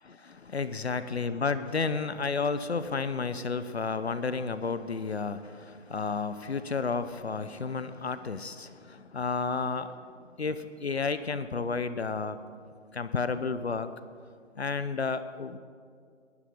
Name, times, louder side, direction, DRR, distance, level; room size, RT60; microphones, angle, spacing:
voice 1, 0.0-10.1 10.4-12.4 12.9-13.9 14.5-15.6, left 4 dB, 60° left, 12 dB, 0.9 m, -32 dB
21.5 x 12.0 x 5.3 m, 2.2 s
figure-of-eight pair, 150°, 37 cm